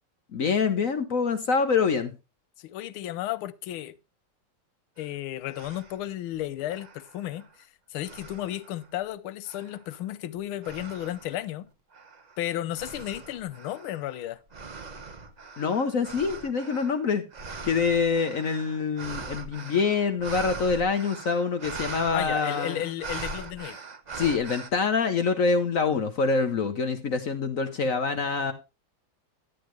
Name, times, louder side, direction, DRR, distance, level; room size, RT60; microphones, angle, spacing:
voice 1, 0.3-2.1 15.6-17.2 17.6-22.8 24.2-28.5, left 5 dB, 55° left, 1.0 m, -25 dB
voice 2, 2.6-4.0 5.0-7.5 7.9-11.7 12.4-14.4 22.1-23.8, left 13 dB, 85° left, 1.5 m, -33 dB
sound 1, 5.0-5.1 5.5-6.1 6.7-7.6 8.0-8.9 9.5-10.0 10.6-11.4 11.9-24.7, right 4 dB, 75° right, 0.4 m, -41 dB
11.5 x 10.0 x 3.1 m
omnidirectional pair, 2.3 m